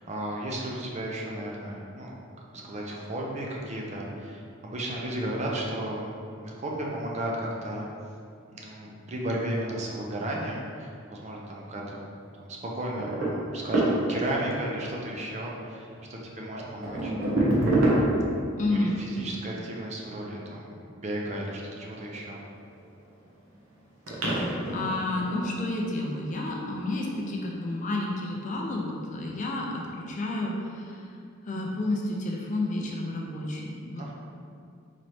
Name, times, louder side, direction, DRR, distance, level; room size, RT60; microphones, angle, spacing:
voice 1, 0.0-2.1 2.5-6.1 6.4-7.9 8.5-12.0 12.4-17.1 18.7-22.4 34.0-34.1, right 1 dB, 35° right, -2 dB, 0.5 m, -34 dB
sound 1, 13.0-14.4 15.9-16.0 16.6-18.5 22.3-23.0 23.6-23.7 24.1-26.1 27.0-27.3 28.1-28.2 28.7-28.8, right 1 dB, 75° right, 0.9 m, -27 dB
voice 2, 18.6-19.0 24.2-24.4 24.7-31.1 31.4-34.1, left 2 dB, 35° left, -1 dB, 0.4 m, -31 dB
4.0 x 3.1 x 3.1 m, 2.4 s
head